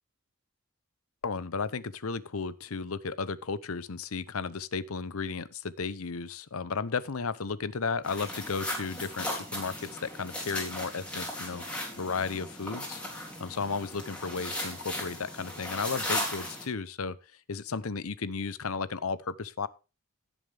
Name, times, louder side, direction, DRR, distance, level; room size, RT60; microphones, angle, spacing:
voice 1, 1.2-11.6 12.0-17.1 17.5-19.7, left 5 dB, 75° left, 0.8 m, -34 dB
sound 1, 8.0-16.6, left 1 dB, 5° left, 3.8 m, -37 dB
16.5 x 7.2 x 3.5 m
head